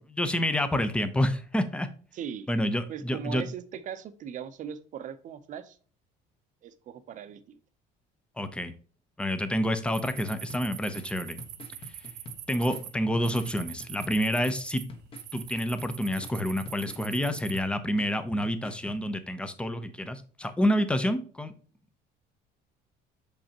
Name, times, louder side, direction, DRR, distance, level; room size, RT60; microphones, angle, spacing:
voice 1, 0.0-1.9 2.5-3.4 8.4-8.7 9.2-11.4 12.5-14.8 15.3-21.5, equal, 5° left, 0.7 m, -28 dB
voice 2, 2.1-2.5 2.9-5.8 6.6-7.6, right 8 dB, 45° right, 0.7 m, -39 dB
sound 1, 9.9-12.9 13.2-14.8 15.2-17.6, right 12 dB, 70° right, 1.1 m, -43 dB
sound 2, 10.5-19.0, left 3 dB, 30° left, 1.2 m, -48 dB
7.0 x 5.3 x 2.9 m
cardioid pair, 155°, 18 cm